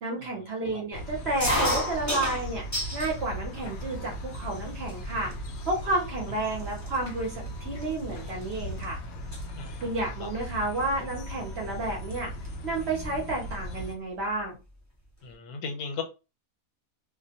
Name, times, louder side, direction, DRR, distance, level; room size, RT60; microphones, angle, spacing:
voice 1, 0.0-2.6 2.9-5.3 5.6-9.0 9.8-12.3 12.6-14.5, right 2 dB, 55° right, 1 dB, 0.8 m, -31 dB
sound 1, 0.9-14.0, equal, 65° left, 0.7 m, -38 dB
sound 2, 1.4-3.1 3.6-4.2 4.9-5.0 5.2-5.6 6.3-6.4 6.6-8.8 9.1-9.4 10.8-11.0 12.1-12.2 12.4-12.5 12.8-13.7, left 1 dB, 15° left, 0.6 m, -31 dB
voice 2, 9.5-9.9 10.2-10.3 15.2-16.0, left 5 dB, 85° left, 4 dB, 1.1 m, -36 dB
2.5 x 2.1 x 2.7 m, 0.30 s
omnidirectional pair, 1.6 m